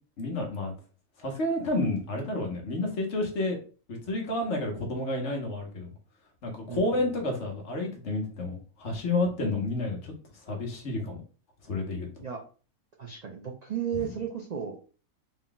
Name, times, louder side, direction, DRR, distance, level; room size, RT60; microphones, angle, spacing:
voice 1, 0.2-0.7 1.2-3.6 3.9-5.9 6.4-10.1 10.5-11.2 11.7-12.1, left 2 dB, 55° left, 1 dB, 1.2 m, -30 dB
voice 2, 6.7-7.1 12.2-12.4 13.0-14.7, right 8 dB, 75° right, 1 dB, 0.3 m, -34 dB
3.8 x 2.2 x 3.8 m, 0.38 s
omnidirectional pair, 1.5 m